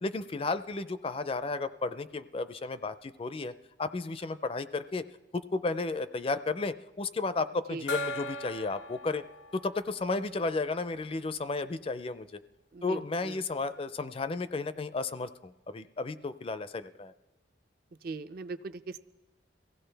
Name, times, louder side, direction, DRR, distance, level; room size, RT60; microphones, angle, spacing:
voice 1, 0.0-3.5 3.8-5.0 5.3-9.2 9.5-12.4 12.8-17.1, left 3 dB, 30° left, 12 dB, 0.4 m, -33 dB
Gong, 7.9-11.1, left 1 dB, 70° left, 0.7 m, -39 dB
voice 2, 12.7-13.4 18.0-19.0, right 3 dB, 50° right, 11 dB, 0.5 m, -40 dB
23.0 x 16.0 x 3.4 m, 1.1 s
head